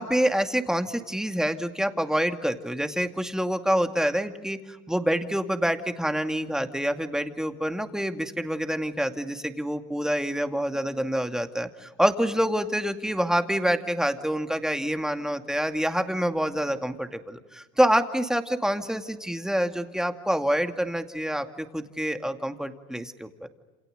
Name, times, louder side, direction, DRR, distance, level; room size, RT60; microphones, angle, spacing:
voice 1, 0.0-23.3, equal, ahead, 7 dB, 2.3 m, -27 dB
28.0 x 28.0 x 6.7 m, 1.2 s
supercardioid pair, 100°, 32 cm